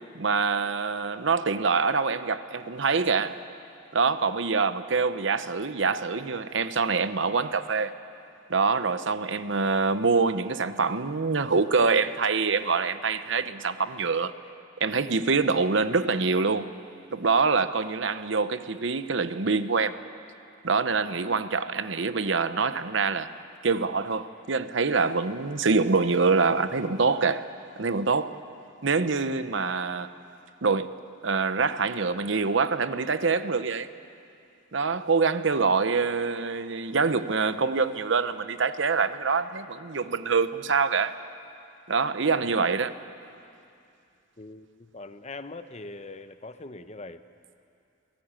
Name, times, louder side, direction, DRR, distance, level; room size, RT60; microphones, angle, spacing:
voice 1, 0.1-3.4 3.9-7.9 8.5-14.3 14.8-16.7 17.1-20.0 20.6-23.3 23.6-27.5 27.8-28.3 28.8-30.1 30.6-31.0 31.2-33.9 34.7-41.1 41.9-43.0, right 4 dB, 60° right, 12 dB, 0.8 m, -25 dB
voice 2, 44.4-47.2, left 2 dB, 35° left, 10 dB, 0.8 m, -42 dB
27.0 x 18.0 x 8.9 m, 2.5 s
head